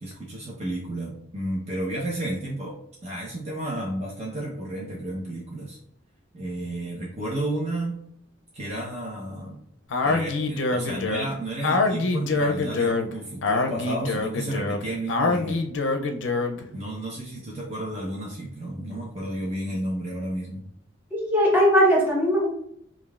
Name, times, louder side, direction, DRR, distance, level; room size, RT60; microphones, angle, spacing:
voice 1, 0.0-5.8 6.3-8.0 8.5-9.6 10.0-15.7 16.7-20.7, right 1 dB, 35° right, -4 dB, 0.8 m, -32 dB
Speech, 9.9-16.7, left 3 dB, 75° left, 0.5 m, -25 dB
voice 2, 21.1-22.5, equal, 10° right, -5 dB, 1.2 m, -19 dB
5.1 x 2.5 x 2.4 m, 0.70 s
head